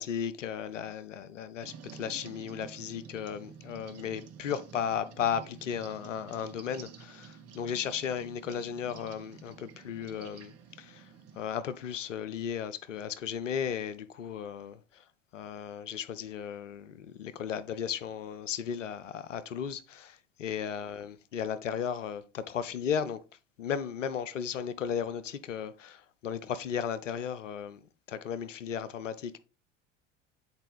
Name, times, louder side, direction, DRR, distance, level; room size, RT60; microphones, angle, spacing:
voice 1, 0.0-15.0 15.3-23.2 23.6-27.8 28.1-29.4, left 8 dB, 85° left, 0.6 m, -35 dB
sound 1, 1.6-11.4, right 7 dB, 45° right, 1.0 m, -50 dB
8.1 x 4.3 x 3.3 m
figure-of-eight pair, 65°, 36 cm